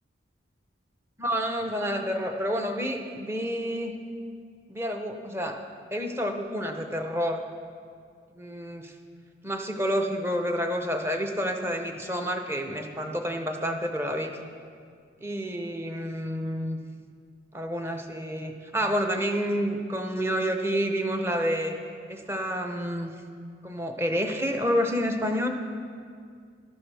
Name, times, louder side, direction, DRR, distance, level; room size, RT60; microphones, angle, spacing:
voice 1, 1.2-3.9 4.7-5.6 5.9-7.4 8.3-8.9 9.4-14.3 15.2-16.8 17.5-21.7 22.1-23.1 23.6-25.5, equal, 15° right, 4 dB, 0.7 m, -29 dB
13.5 x 12.5 x 3.4 m, 2.2 s
head